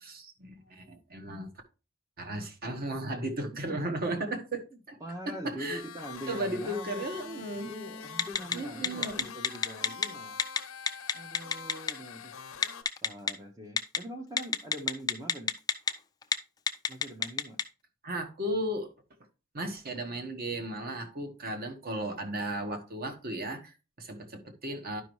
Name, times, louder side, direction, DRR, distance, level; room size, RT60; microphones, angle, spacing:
voice 1, 0.0-1.5 2.2-4.6 4.9-5.0 5.2-5.8 6.3-7.7 8.5-9.3 18.0-18.9 19.5-25.0, right 1 dB, 45° right, 1.3 m, -35 dB
voice 2, 3.7-4.4 4.7-7.0 7.7-10.4 11.1-12.3 13.0-15.6 16.9-17.6, equal, 15° right, 0.8 m, -43 dB
sound 1, 5.7-12.8, left 6 dB, 80° left, 0.8 m, -44 dB
Telephone, 8.2-8.5 8.8-10.1 10.4-10.6 10.9-11.9 12.6-13.3 13.8-14.0 14.4-15.9 16.2-16.3 16.7-17.6, left 6 dB, 20° left, 0.5 m, -26 dB
11.0 x 5.3 x 3.1 m
head